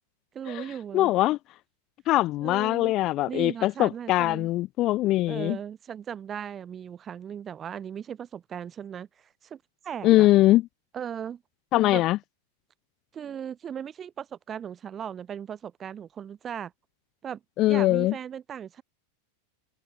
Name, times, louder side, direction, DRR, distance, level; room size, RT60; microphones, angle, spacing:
voice 1, 0.3-1.1 2.4-2.9 3.3-4.5 5.3-10.3 10.9-11.4 11.9-12.0 13.1-16.7 17.2-17.4 17.7-18.8, right 8 dB, 25° right, 0.8 m, -37 dB
voice 2, 0.9-1.4 2.1-5.6 10.0-10.6 11.7-12.2 17.6-18.1, left 16 dB, 35° left, 0.3 m, -22 dB
figure-of-eight pair, 90°, 0 cm